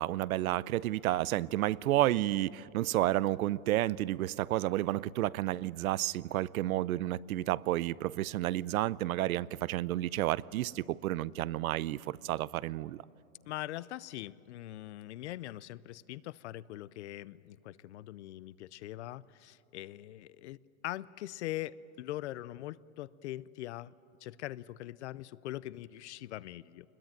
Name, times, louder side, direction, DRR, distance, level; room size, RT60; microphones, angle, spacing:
voice 1, 0.0-13.0, right 15 dB, 85° right, 0.7 m, -31 dB
voice 2, 13.5-20.6 20.8-23.9 24.2-26.9, left 15 dB, 55° left, 0.6 m, -42 dB
24.5 x 21.0 x 9.0 m
supercardioid pair, 165°, 41 cm